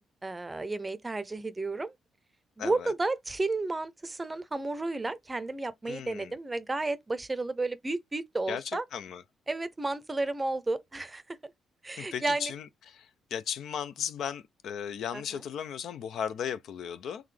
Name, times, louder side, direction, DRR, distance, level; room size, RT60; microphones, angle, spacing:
voice 1, 0.0-1.9 2.6-8.8 9.5-11.5 11.8-12.5 15.1-15.4, right 2 dB, 20° right, 0.6 m, -32 dB
voice 2, 2.6-2.9 5.9-6.3 8.5-9.2 12.0-17.2, left 8 dB, 70° left, 0.4 m, -36 dB
3.9 x 3.0 x 3.2 m
cardioid pair, 90°, 0 cm